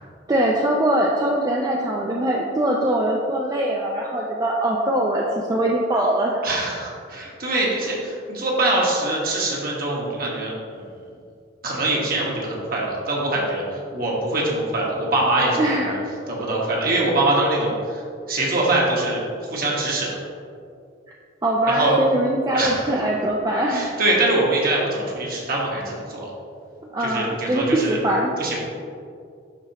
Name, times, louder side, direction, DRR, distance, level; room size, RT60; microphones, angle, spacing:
voice 1, 0.3-6.4 7.8-7.9 15.6-16.0 21.4-24.0 26.9-28.3, right 1 dB, 20° right, -2 dB, 0.4 m, -22 dB
voice 2, 6.4-10.8 11.6-16.0 16.3-18.0 18.3-19.2 19.5-20.1 21.7-22.0 22.5-22.9 23.7-26.3 27.0-28.0 28.4-28.6, right 2 dB, 45° right, -3 dB, 1.4 m, -23 dB
11.0 x 4.4 x 2.9 m, 2.3 s
head